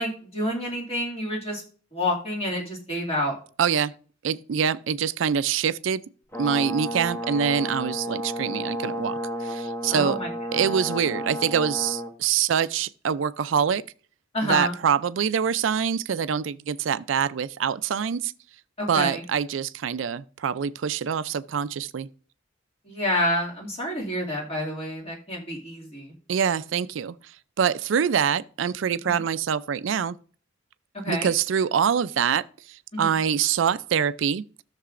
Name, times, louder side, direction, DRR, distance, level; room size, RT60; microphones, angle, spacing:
voice 1, 0.0-1.6 1.9-3.4 9.9-10.7 14.3-14.8 18.8-19.2 22.8-26.1 29.0-29.2 30.9-31.3 32.9-33.1, left 1 dB, 30° left, 2.2 m, -28 dB
voice 2, 3.6-3.9 4.2-6.0 6.4-10.2 10.5-13.8 14.4-18.3 18.9-22.1 26.3-30.1 31.1-34.4, right 7 dB, 75° right, 0.4 m, -25 dB
Brass instrument, 6.3-12.1, equal, 15° left, 1.0 m, -32 dB
14.0 x 6.7 x 2.5 m
head